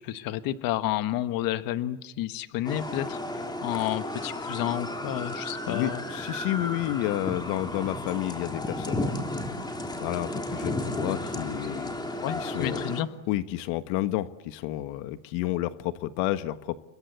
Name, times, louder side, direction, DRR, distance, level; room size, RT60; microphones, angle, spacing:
voice 1, 0.0-6.0 12.2-13.1, left 13 dB, 50° left, 10 dB, 1.5 m, -31 dB
sound 1, 2.6-13.0, left 1 dB, 10° left, 3.3 m, -33 dB
voice 2, 5.7-9.2 10.0-12.0 12.3-12.8 13.3-16.8, left 15 dB, 70° left, 10 dB, 1.4 m, -30 dB
30.0 x 22.0 x 8.0 m, 0.89 s
cardioid pair, 145°, 43 cm